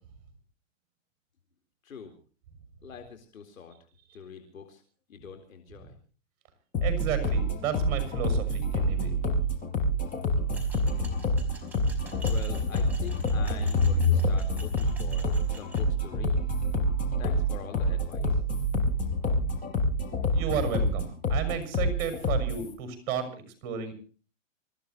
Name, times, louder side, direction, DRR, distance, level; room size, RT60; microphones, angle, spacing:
voice 1, 1.8-2.1 2.8-3.7 4.1-4.8 5.1-5.9 12.2-16.4 17.2-18.4, left 6 dB, 85° left, 5 dB, 4.0 m, -44 dB
sound 1, 6.7-22.7, equal, 20° left, 5.1 m, -27 dB
voice 2, 6.8-9.1 20.3-23.9, right 7 dB, 40° right, 8 dB, 6.6 m, -33 dB
sound 2, 10.5-15.8, right 1 dB, 5° right, 5.0 m, -48 dB
26.0 x 15.5 x 3.0 m, 0.39 s
hypercardioid pair, 145°, 40 cm